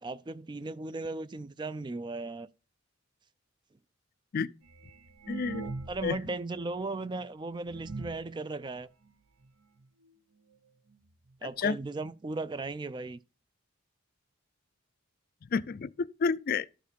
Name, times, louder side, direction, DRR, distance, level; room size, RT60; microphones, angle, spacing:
voice 1, 0.0-2.5 5.6-8.9 11.4-13.2, right 3 dB, 20° right, 0.4 m, -37 dB
sound 1, 4.6-6.3 6.6-6.7 7.2-7.3 7.7-8.3 9.1-9.2 9.4-9.5 9.8-10.1 10.9-11.0 11.3-11.4 12.0-12.1 12.4-12.5, right 3 dB, 85° right, 0.9 m, -41 dB
voice 2, 5.3-5.7 6.0-6.2 11.6-11.8 15.5-16.7, left 5 dB, 45° left, 0.4 m, -30 dB
12.5 x 5.0 x 5.2 m
head